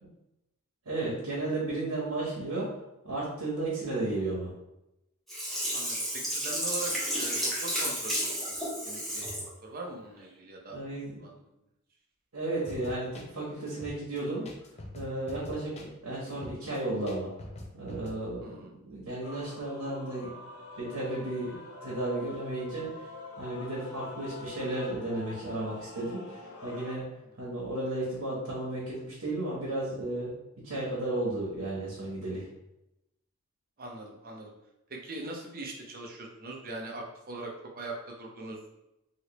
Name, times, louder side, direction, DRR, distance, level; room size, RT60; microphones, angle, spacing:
voice 1, 0.8-2.7 3.0-4.5 10.7-11.2 12.3-14.5 14.9-17.3 17.7-20.3 20.8-22.9 23.4-27.1 27.4-32.4, right 2 dB, 80° right, -6 dB, 1.1 m, -34 dB
Sink (filling or washing), 5.3-9.5 9.9-10.0, equal, ahead, 1.0 m, -32 dB
voice 2, 5.7-8.6 8.8-9.3 9.6-10.8 11.2-11.4 18.4-18.7 33.8-34.5 34.9-38.6, right 2 dB, 40° right, 0 dB, 0.6 m, -41 dB
sound 1, 12.7-18.1, left 1 dB, 30° left, 0.4 m, -45 dB
Male singing / Female singing / Musical instrument, 19.2-27.0, left 3 dB, 80° left, 0.7 m, -45 dB
3.1 x 2.9 x 3.0 m, 0.90 s
head